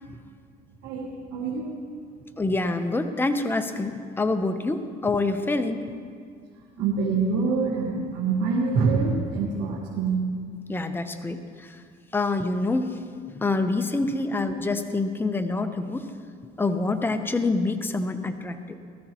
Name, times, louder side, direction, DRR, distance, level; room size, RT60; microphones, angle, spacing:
voice 1, 0.8-1.7 6.8-10.3 14.3-14.6, right 4 dB, 90° right, -3 dB, 1.6 m, -25 dB
voice 2, 2.4-5.9 10.7-11.8 12.1-12.9 13.3-16.1 16.6-18.8, left 3 dB, 10° left, 8 dB, 0.7 m, -26 dB
19.0 x 13.5 x 3.0 m, 2.1 s
cardioid pair, 110°, 17 cm